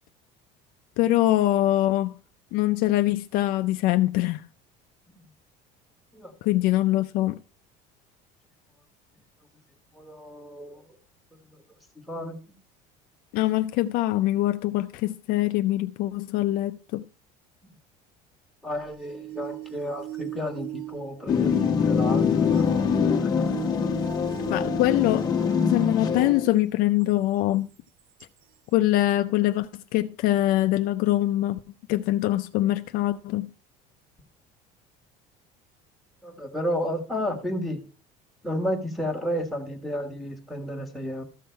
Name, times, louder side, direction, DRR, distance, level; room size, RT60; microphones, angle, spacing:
voice 1, 1.0-2.2 2.5-4.5 6.4-7.4 13.3-17.1 24.5-25.3 25.6-27.7 28.7-31.6 31.9-33.5, left 15 dB, 55° left, 0.5 m, -23 dB
voice 2, 9.9-10.8 12.1-12.4 18.6-22.7 23.2-23.4 36.2-37.8 38.4-41.2, equal, ahead, 1.4 m, -32 dB
sound 1, 18.7-26.4 27.1-27.2 28.2-28.3, right 15 dB, 75° right, 0.7 m, -39 dB
sound 2, 21.3-26.5, left 6 dB, 20° left, 0.9 m, -24 dB
13.5 x 6.3 x 4.5 m
cardioid pair, 165°, 17 cm